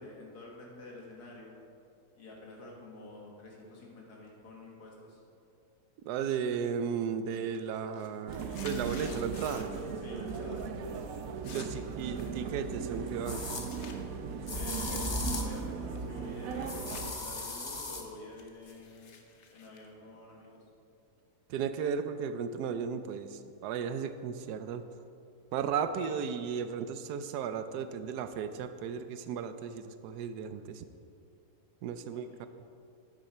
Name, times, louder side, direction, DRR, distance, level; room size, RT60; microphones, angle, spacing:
voice 1, 0.0-1.5 2.1-5.2 10.0-10.6 14.5-20.6 32.1-32.5, left 2 dB, 80° left, -2 dB, 2.3 m, -49 dB
voice 2, 6.0-9.7 11.4-13.4 21.5-24.8 25.5-30.8 31.8-32.3, right 7 dB, 90° right, 10 dB, 1.2 m, -35 dB
sound 1, 6.4-6.8 7.1-9.9 10.2-10.7 10.9-14.0 14.5-17.1 17.4-20.6, left 5 dB, 55° left, 1.0 m, -52 dB
sound 2, 8.3-17.1, right 6 dB, 70° right, 1.0 m, -38 dB
sound 3, 12.1-12.2 13.3-13.7 14.5-15.6 16.7-18.1, left 2 dB, 40° left, 0.4 m, -36 dB
9.3 x 8.9 x 4.3 m, 2.5 s
omnidirectional pair, 1.7 m